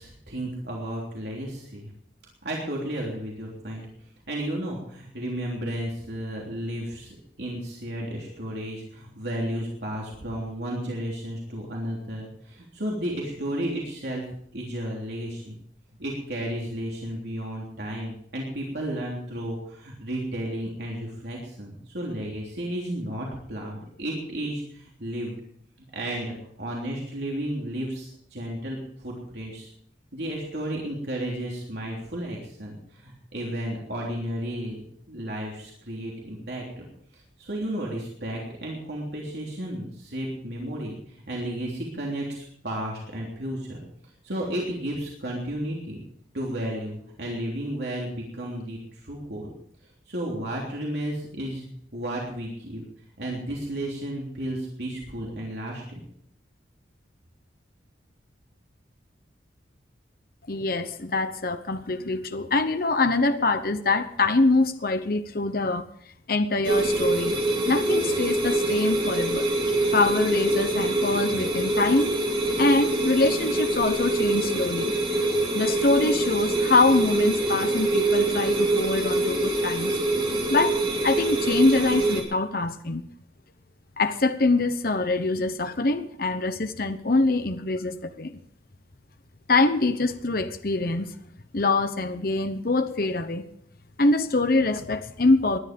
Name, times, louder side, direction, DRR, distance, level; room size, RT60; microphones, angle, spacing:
voice 1, 0.0-1.9 2.4-3.8 4.3-14.2 14.5-15.6 16.0-25.4 25.9-29.7 30.1-34.8 35.1-36.9 37.4-41.0 41.3-43.8 44.2-46.0 46.3-49.5 50.1-51.6 51.9-52.8 53.2-56.0, right 1 dB, 60° right, -2 dB, 3.3 m, -33 dB
voice 2, 60.5-65.9 66.3-67.4 67.7-69.5 69.9-72.2 72.6-74.9 75.5-80.0 80.5-80.8 81.0-83.1 84.0-88.4 89.5-91.1 91.5-93.4 94.0-95.6, left 2 dB, 50° left, 9 dB, 0.9 m, -24 dB
sound 1, 66.6-82.2, right 2 dB, 25° right, 3.0 m, -25 dB
19.5 x 11.0 x 5.3 m, 0.68 s
head